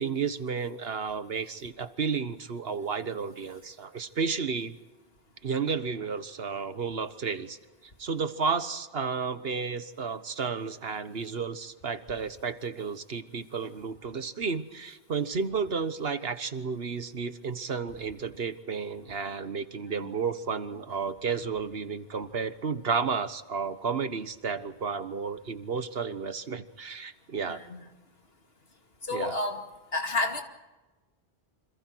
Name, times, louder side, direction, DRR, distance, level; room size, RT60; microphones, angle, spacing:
voice 1, 0.0-4.7 5.4-7.6 8.0-27.6 29.1-29.3, right 5 dB, 70° right, 11 dB, 1.5 m, -32 dB
voice 2, 27.5-27.8 29.0-29.6 29.9-30.4, left 2 dB, 70° left, 4 dB, 2.8 m, -31 dB
28.5 x 26.5 x 4.7 m, 1.1 s
omnidirectional pair, 1.1 m